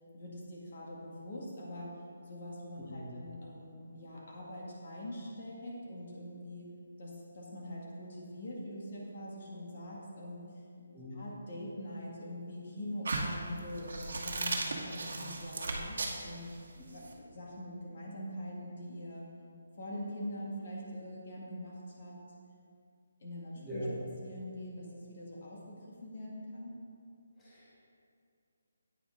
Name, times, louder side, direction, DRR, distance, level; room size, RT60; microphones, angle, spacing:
voice 1, 0.1-2.0 2.2-6.7 7.0-10.5 11.1-16.5 16.9-19.3 19.8-22.2 23.2-23.8 24.2-26.7, equal, 45° left, -3 dB, 2.0 m, -43 dB
voice 2, 2.7-3.1 10.9-11.2 16.7-16.8 23.5-23.9 27.4-27.7, equal, 10° left, -12 dB, 1.5 m, -42 dB
sound 1, 13.0-17.1, right 2 dB, 65° right, 1.4 m, -36 dB
10.0 x 9.1 x 3.7 m, 2.3 s
hypercardioid pair, 175°, 0 cm